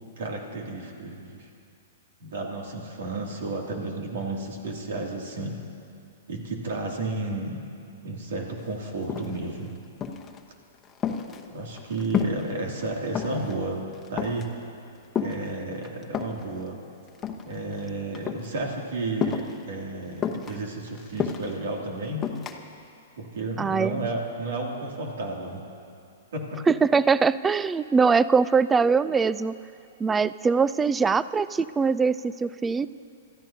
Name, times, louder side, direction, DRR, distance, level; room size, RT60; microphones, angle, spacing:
voice 1, 0.2-1.5 2.2-5.6 6.3-7.6 8.0-9.8 11.5-14.6 15.2-16.8 17.4-22.3 23.2-25.6 26.3-26.6, right 2 dB, 70° right, 0 dB, 2.5 m, -32 dB
sound 1, 8.6-8.7 8.9-9.6 10.0-10.4 10.7-12.5 12.8-13.6 13.9-14.5 15.1-16.5 17.1-17.9 18.1-18.5 19.2-19.6 20.2-21.6 22.2-22.6, left 7 dB, 20° left, 1.0 m, -30 dB
voice 2, 23.6-24.1 26.7-29.5 30.0-32.9, right 5 dB, 15° right, 17 dB, 0.3 m, -22 dB
28.0 x 14.0 x 2.8 m, 2.5 s
hypercardioid pair, 125°, 0 cm